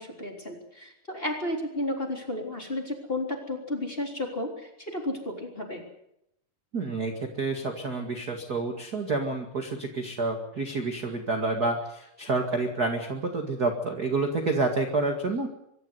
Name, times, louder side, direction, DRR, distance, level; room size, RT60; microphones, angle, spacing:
voice 1, 0.0-4.5 4.9-5.8, left 1 dB, 15° left, 1 dB, 3.4 m, -32 dB
voice 2, 6.7-15.5, right 3 dB, 35° right, 3 dB, 1.6 m, -29 dB
24.5 x 12.5 x 9.6 m, 0.80 s
omnidirectional pair, 4.6 m